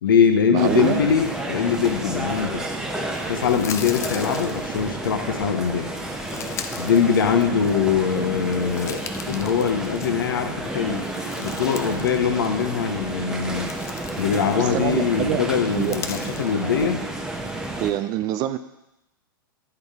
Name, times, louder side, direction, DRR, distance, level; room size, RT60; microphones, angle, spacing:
voice 1, 0.0-2.7 3.3-5.9 6.8-11.1 11.4-13.7 14.2-17.0, left 7 dB, 65° left, 6 dB, 0.8 m, -22 dB
voice 2, 0.5-1.0 8.1-8.4 14.6-15.4 15.7-16.0 17.8-18.6, right 13 dB, 35° right, 11 dB, 0.4 m, -25 dB
sound 1, 0.6-17.9, right 1 dB, 5° right, 0.7 m, -31 dB
sound 2, 3.1-5.1 5.8-7.8 8.2-10.4 10.7-12.2 12.4-12.6 13.2-14.9 15.6-16.5, left 7 dB, 25° left, 0.4 m, -38 dB
10.0 x 3.9 x 3.6 m, 0.89 s
figure-of-eight pair, 100°, 12 cm